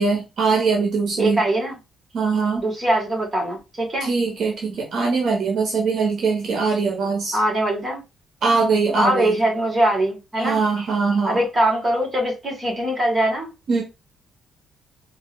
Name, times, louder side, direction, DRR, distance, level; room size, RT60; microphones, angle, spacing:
voice 1, 0.0-1.4 2.1-2.6 4.0-7.4 8.4-9.4 10.4-11.4 13.7-13.8, right 4 dB, 65° right, 1.1 m, -22 dB
voice 2, 1.2-1.7 2.6-4.1 7.3-8.0 8.9-10.6 11.2-13.5, right 1 dB, 25° right, 2.8 m, -22 dB
4.4 x 2.8 x 3.2 m
cardioid pair, 90°, 0 cm